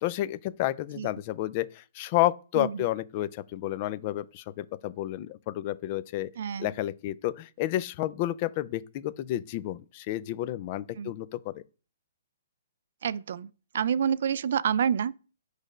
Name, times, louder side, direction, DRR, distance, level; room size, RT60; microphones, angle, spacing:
voice 1, 0.0-6.3 6.6-11.6, left 14 dB, 35° left, 0.4 m, -30 dB
voice 2, 6.4-6.7 11.0-11.1 13.0-15.2, right 8 dB, 60° right, 0.3 m, -28 dB
6.4 x 3.3 x 5.1 m
hypercardioid pair, 155°, 0 cm